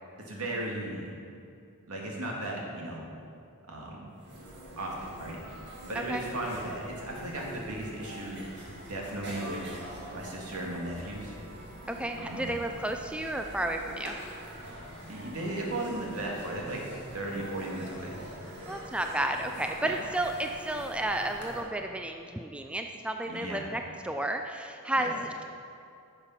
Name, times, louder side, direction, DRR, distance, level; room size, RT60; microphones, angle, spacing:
voice 1, 0.3-1.1 1.9-3.1 3.7-4.1 4.8-5.4 5.9-8.4 8.9-9.6 10.1-11.3 12.2-12.6 15.1-16.8 17.1-18.2 19.8-20.0 23.3-23.7 25.0-25.1, right 1 dB, 75° right, -2 dB, 2.0 m, -36 dB
sound 1, 3.9-4.0 4.1-21.6, equal, 55° right, 2.0 m, -44 dB
voice 2, 11.9-14.2 18.7-25.4, right 1 dB, 5° right, 4 dB, 0.4 m, -32 dB
10.5 x 6.8 x 5.8 m, 2.4 s
head